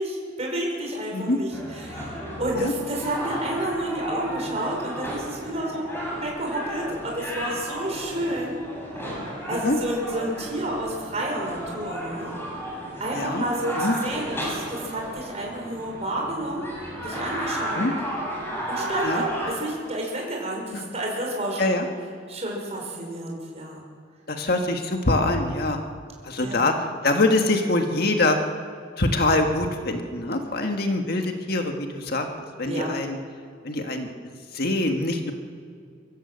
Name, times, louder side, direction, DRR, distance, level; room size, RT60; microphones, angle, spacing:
voice 1, 0.0-8.6 9.0-9.1 9.5-12.3 13.0-16.7 17.0-17.9 18.7-21.9 22.3-23.8 26.4-26.7 32.7-32.9, right 1 dB, 35° right, -1 dB, 5.6 m, -30 dB
sound 1, 1.5-19.5, equal, 10° left, 7.0 m, -33 dB
voice 2, 13.1-13.4 13.7-13.9 17.7-17.9 19.0-19.2 20.7-20.9 21.6-21.9 24.3-25.8 26.2-28.4 29.0-33.2 33.6-34.1 34.5-35.3, left 2 dB, 55° left, 4 dB, 1.7 m, -24 dB
25.0 x 14.5 x 8.2 m, 2.3 s
head